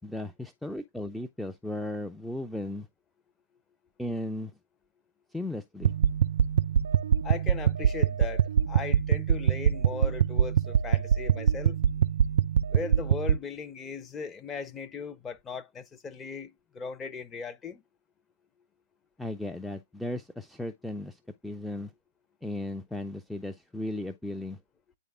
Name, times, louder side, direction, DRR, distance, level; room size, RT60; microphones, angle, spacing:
voice 1, 0.0-2.9 4.0-4.5 5.3-5.9 19.2-21.9 22.4-24.6, left 1 dB, ahead, 0.5 m, -36 dB
sound 1, 5.8-13.4, right 9 dB, 60° right, 0.3 m, -24 dB
voice 2, 7.2-11.8 12.7-17.8, left 5 dB, 15° left, 0.9 m, -38 dB
9.2 x 3.5 x 3.5 m
figure-of-eight pair, 115°, 0 cm